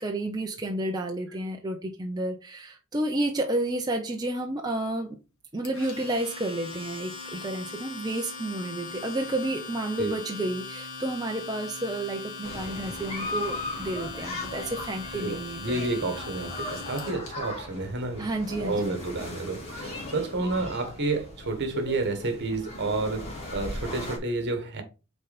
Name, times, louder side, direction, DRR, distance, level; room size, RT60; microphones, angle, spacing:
voice 1, 0.0-5.2 5.5-15.8 18.2-18.9, right 1 dB, 20° right, 0.8 m, -31 dB
Domestic sounds home sounds, 5.6-17.3, left 3 dB, 75° left, 2.0 m, -40 dB
sound 1, 12.4-24.2, left 2 dB, 30° left, 2.5 m, -38 dB
voice 2, 15.1-18.3 18.6-23.2 23.5-24.8, right 2 dB, 55° right, 1.5 m, -30 dB
6.8 x 4.1 x 4.2 m
head